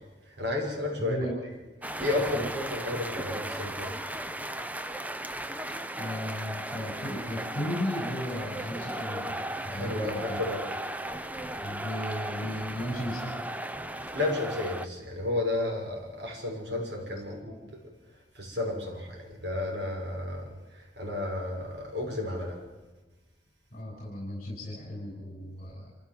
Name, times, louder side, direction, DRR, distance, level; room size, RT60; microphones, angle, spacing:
voice 1, 0.0-1.2 1.8-4.0 9.7-10.8 14.1-17.9 18.3-22.7, left 2 dB, 65° right, 6.6 m, -32 dB
voice 2, 1.0-1.4 2.3-2.4 6.0-10.4 11.6-13.4 16.8-17.6 23.7-25.9, left 1 dB, 40° left, 6.6 m, -36 dB
sound 1, 1.8-14.9, right 1 dB, 10° right, 0.8 m, -36 dB
26.5 x 15.0 x 7.7 m
head